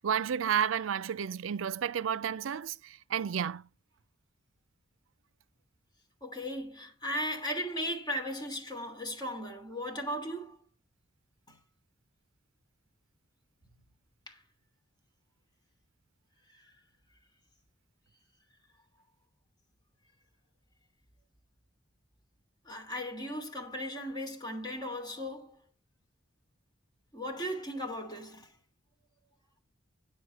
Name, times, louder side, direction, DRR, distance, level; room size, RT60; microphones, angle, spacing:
voice 1, 0.0-3.6, right 8 dB, 75° right, 0.4 m, -31 dB
voice 2, 6.2-10.6 14.3-14.4 22.7-25.6 27.1-28.5, equal, 20° left, 3.0 m, -37 dB
9.5 x 8.1 x 4.6 m
head